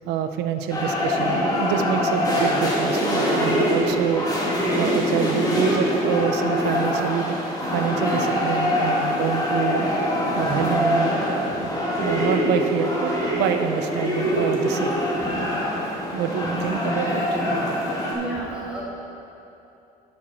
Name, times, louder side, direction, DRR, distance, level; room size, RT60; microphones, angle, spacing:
voice 1, 0.1-4.2 4.8-9.9 10.3-15.0 16.1-17.4, right 9 dB, 85° right, 8 dB, 0.6 m, -27 dB
sound 1, 0.7-18.1, equal, 20° left, 2.1 m, -23 dB
voice 2, 18.1-18.8, right 3 dB, 5° right, -7 dB, 2.3 m, -31 dB
10.5 x 6.3 x 4.4 m, 2.8 s
cardioid pair, 110°, 17 cm